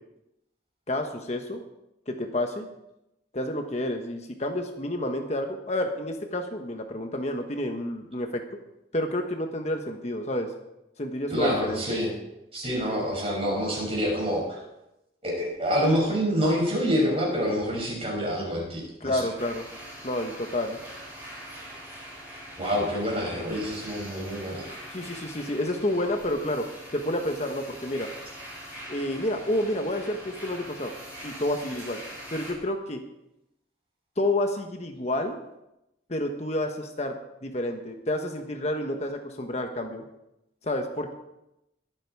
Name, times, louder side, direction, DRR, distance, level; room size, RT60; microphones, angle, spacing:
voice 1, 0.9-1.6 2.1-2.7 3.3-8.4 8.9-10.5 11.0-12.0 19.0-19.6 20.0-20.8 24.9-26.6 26.9-28.1 28.9-30.9 31.2-32.0 32.3-33.0 34.2-35.4 36.1-37.2 37.4-40.0 40.6-41.1, left 1 dB, 35° left, 4 dB, 1.2 m, -29 dB
voice 2, 11.3-12.1 12.5-14.6 15.2-19.3 22.6-24.7, equal, 30° right, -2 dB, 6.6 m, -27 dB
sound 1, 19.4-32.5, equal, 10° right, 6.6 m, -43 dB
22.5 x 9.1 x 4.7 m, 0.89 s
head